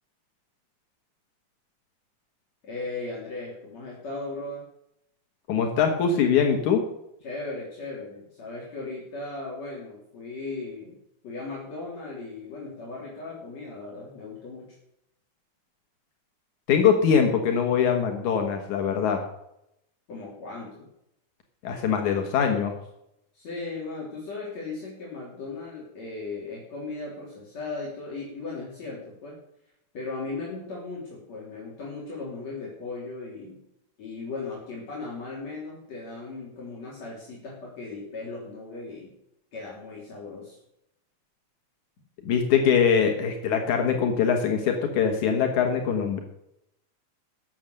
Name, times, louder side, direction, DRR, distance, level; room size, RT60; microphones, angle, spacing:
voice 1, 2.6-4.6 7.2-11.0 11.2-14.7 20.1-20.9 23.3-29.4 29.9-33.6 34.0-39.1 39.5-40.6, left 3 dB, 65° left, -5 dB, 4.6 m, -37 dB
voice 2, 5.5-6.8 16.7-19.2 21.6-22.7 42.3-46.2, left 7 dB, 80° left, 4 dB, 2.9 m, -22 dB
17.0 x 7.3 x 6.6 m, 0.80 s
omnidirectional pair, 3.3 m